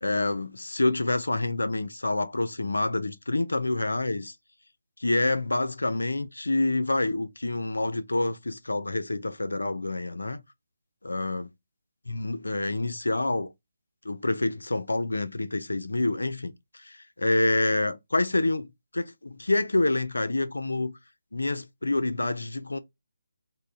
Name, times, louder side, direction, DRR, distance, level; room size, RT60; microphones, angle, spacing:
voice 1, 0.0-4.3 5.0-10.4 11.0-11.5 12.1-13.5 14.0-16.5 16.8-20.9 21.3-22.8, left 2 dB, 80° left, 0.4 m, -27 dB
3.6 x 2.0 x 2.4 m
figure-of-eight pair, 150°, 0 cm